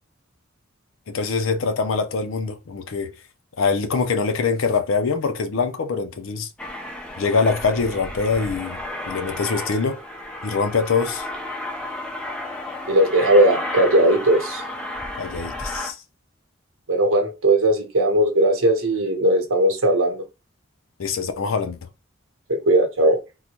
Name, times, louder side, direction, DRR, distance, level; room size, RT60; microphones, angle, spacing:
voice 1, 1.1-3.1 3.6-6.5 7.2-8.8 9.1-10.0 10.4-11.3 15.2-16.0 21.0-21.8, left 4 dB, 75° left, 0.5 m, -23 dB
Aircraft, 6.6-15.9, left 1 dB, 5° left, 0.4 m, -32 dB
voice 2, 12.9-14.6 16.9-20.2 22.5-23.2, right 1 dB, 90° right, 0.9 m, -18 dB
3.8 x 2.1 x 2.9 m
head